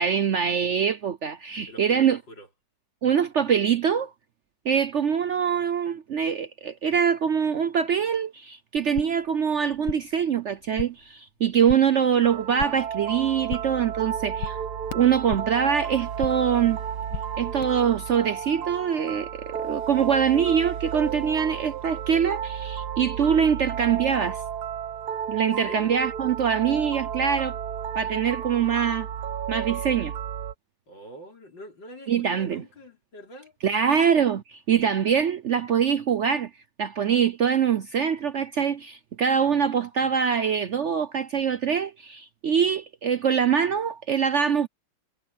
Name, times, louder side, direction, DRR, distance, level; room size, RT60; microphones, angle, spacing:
voice 1, 0.0-2.2 3.0-4.1 4.6-14.6 14.9-16.8 17.4-24.4 25.3-27.6 27.9-29.1 29.5-30.1 32.1-32.6 33.6-36.5 36.8-44.7, right 7 dB, 75° right, 0.6 m, -24 dB
voice 2, 1.7-2.5 25.4-26.0 30.9-33.6, equal, 65° left, 5.6 m, -44 dB
sound 1, 8.8-9.3 9.6-10.2 10.5-11.1 11.4-12.0 12.3-13.0 13.2-13.9 14.1-15.6 15.9-16.6 16.8-17.6, left 7 dB, 50° left, 1.3 m, -38 dB
sound 2, 12.2-30.5, right 8 dB, 60° right, 1.4 m, -32 dB
omnidirectional pair, 2.1 m